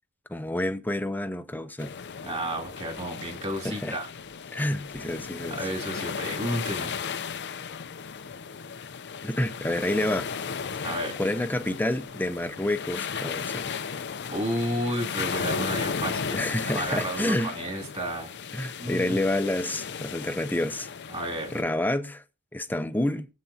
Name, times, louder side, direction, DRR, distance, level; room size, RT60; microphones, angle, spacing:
voice 1, 0.3-1.9 3.6-4.0 4.5-5.6 9.2-10.3 11.2-13.7 16.3-17.5 18.5-20.9 21.5-22.2 22.5-23.3, left 1 dB, 10° left, 0.8 m, -28 dB
sound 1, 1.8-21.6, left 6 dB, 55° left, 0.7 m, -35 dB
voice 2, 2.2-4.1 5.5-7.0 10.8-11.1 14.3-18.3 18.8-19.2 21.1-21.5, right 1 dB, 30° right, 2.9 m, -32 dB
24.0 x 8.4 x 2.9 m
head